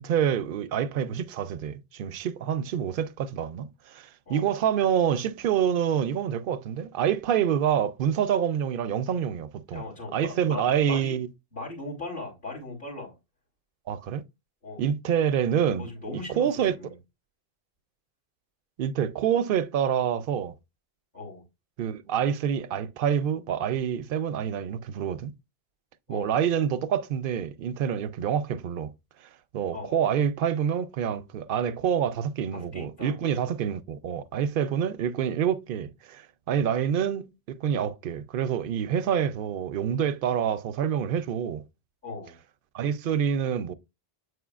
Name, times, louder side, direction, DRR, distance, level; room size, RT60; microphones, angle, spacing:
voice 1, 0.0-9.8 10.1-11.3 13.9-14.2 14.8-15.9 16.4-16.8 18.8-20.5 21.8-25.3 26.1-28.9 29.5-41.6 42.7-43.7, right 8 dB, 65° right, 0.7 m, -27 dB
voice 2, 9.7-11.2 11.5-13.1 14.6-14.9 15.8-17.0 21.1-21.4 26.1-26.4 29.7-30.1 32.5-33.2 42.0-42.4, left 2 dB, 55° left, 3.6 m, -39 dB
8.0 x 5.0 x 2.4 m
omnidirectional pair, 1.1 m